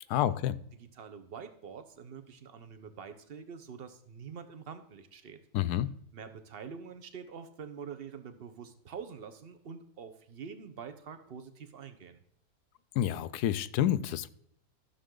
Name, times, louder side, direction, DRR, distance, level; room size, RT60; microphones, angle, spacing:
voice 1, 0.1-0.6 5.5-5.9 13.0-14.3, left 12 dB, 85° left, 14 dB, 1.1 m, -28 dB
voice 2, 0.7-5.4 6.1-12.2, right 6 dB, 45° right, 10 dB, 0.9 m, -46 dB
13.5 x 6.7 x 3.8 m, 0.71 s
omnidirectional pair, 1.6 m